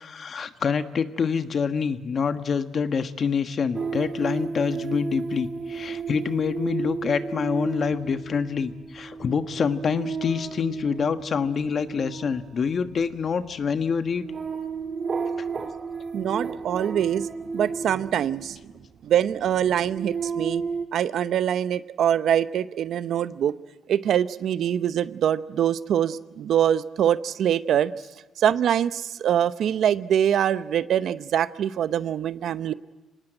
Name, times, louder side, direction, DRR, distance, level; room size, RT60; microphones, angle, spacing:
voice 1, 0.0-14.3 15.4-15.5, left 6 dB, 50° left, 9 dB, 1.3 m, -26 dB
sound 1, 3.7-18.9 19.5-20.9, right 5 dB, 40° right, 2.1 m, -33 dB
voice 2, 16.1-17.3 17.5-18.6 19.0-20.6 20.9-23.6 23.9-27.9 28.4-32.7, right 9 dB, 70° right, 14 dB, 0.7 m, -24 dB
25.5 x 19.0 x 9.0 m, 1.2 s
cardioid pair, 90°, 0 cm